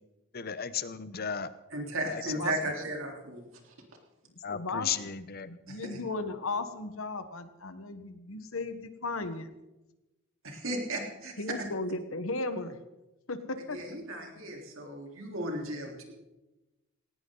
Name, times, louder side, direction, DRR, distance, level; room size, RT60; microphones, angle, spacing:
voice 1, 0.3-1.5 2.1-2.4 4.4-5.5, left 7 dB, 50° left, 14 dB, 0.9 m, -35 dB
voice 2, 1.7-3.4 5.7-6.0 10.4-11.7 13.7-16.1, right 1 dB, 75° right, 1 dB, 3.8 m, -35 dB
voice 3, 4.5-5.1 5.4-9.5 11.4-12.8 13.3-13.8, left 3 dB, 80° left, 10 dB, 1.4 m, -35 dB
19.0 x 18.0 x 4.0 m, 1.0 s
head